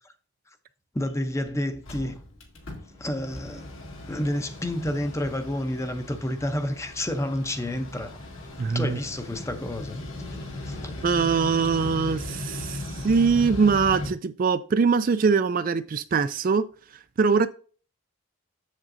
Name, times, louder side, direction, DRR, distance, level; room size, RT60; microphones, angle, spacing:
voice 1, 0.9-2.2 3.0-3.7 4.1-8.2 8.7-10.0 10.6-10.9, left 1 dB, 15° left, 0.6 m, -29 dB
Mechanical fan, 1.1-1.2 1.5-1.6 1.7-14.1, left 1 dB, 70° left, 1.9 m, -38 dB
voice 2, 8.6-9.0 11.0-16.7 17.2-17.5, right 5 dB, 40° right, 0.3 m, -22 dB
7.4 x 7.2 x 2.6 m
head